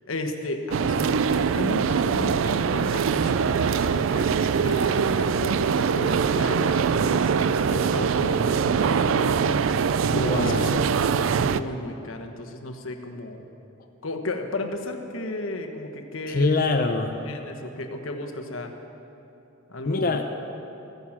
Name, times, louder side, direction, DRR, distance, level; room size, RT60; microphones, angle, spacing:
voice 1, 0.1-9.6 10.1-13.4 14.0-16.5 17.2-18.7 19.7-20.2, left 2 dB, 85° left, 5 dB, 1.2 m, -34 dB
sound 1, 0.7-11.6, right 6 dB, 70° right, 0.4 m, -23 dB
voice 2, 10.1-10.8 16.3-17.1 19.9-20.2, left 3 dB, 45° left, 3 dB, 0.7 m, -24 dB
15.0 x 9.3 x 7.3 m, 3.0 s
head